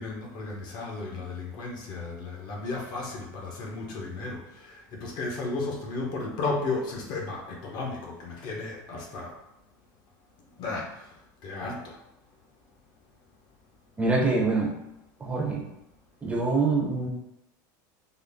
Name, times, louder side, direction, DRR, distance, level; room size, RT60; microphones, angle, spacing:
voice 1, 0.0-9.4 10.6-10.9 11.4-12.0, left 3 dB, 45° left, 0 dB, 0.8 m, -34 dB
voice 2, 14.0-14.7 15.2-15.6 16.2-17.1, right 3 dB, 15° right, -2 dB, 0.6 m, -25 dB
3.8 x 2.0 x 3.5 m, 0.86 s
supercardioid pair, 145°, 10 cm